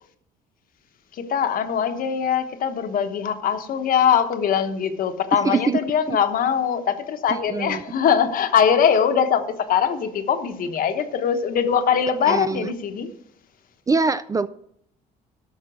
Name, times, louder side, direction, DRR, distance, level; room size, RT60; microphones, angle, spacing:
voice 1, 1.1-13.1, left 7 dB, 55° left, 1.1 m, -22 dB
voice 2, 5.4-5.8 6.1-6.2 7.3-7.8 12.3-12.7 13.9-14.5, right 4 dB, 20° right, 0.3 m, -23 dB
12.5 x 5.9 x 6.2 m
cardioid pair, 110°, 17 cm